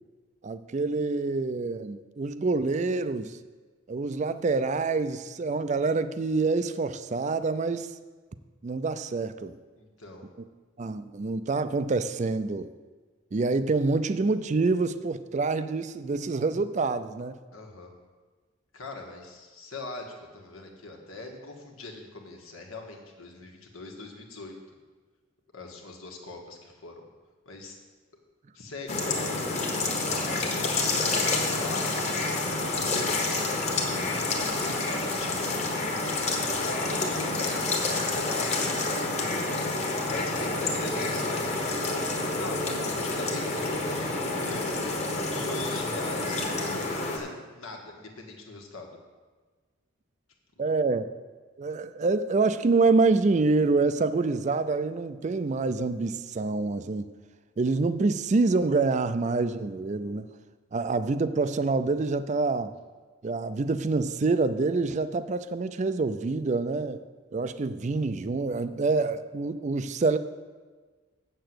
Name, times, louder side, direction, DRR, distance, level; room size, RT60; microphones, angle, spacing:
voice 1, 0.4-3.4 3.9-7.9 8.6-9.6 10.8-12.7 13.3-17.4 50.6-51.1 51.6-57.1 57.6-60.3 60.7-62.7 63.2-67.0 67.3-70.2, right 3 dB, 35° right, 12 dB, 0.4 m, -26 dB
voice 2, 9.8-10.3 17.5-17.9 18.7-24.6 25.5-27.1 27.4-27.8 28.5-29.5 30.1-34.1 34.9-35.9 36.5-39.3 40.1-41.9 42.4-45.0 45.2-46.6 46.9-49.0, left 3 dB, 90° left, 2 dB, 1.6 m, -42 dB
sound 1, 28.9-47.2, left 2 dB, 35° left, 1.3 m, -28 dB
7.5 x 6.7 x 7.8 m, 1.4 s
head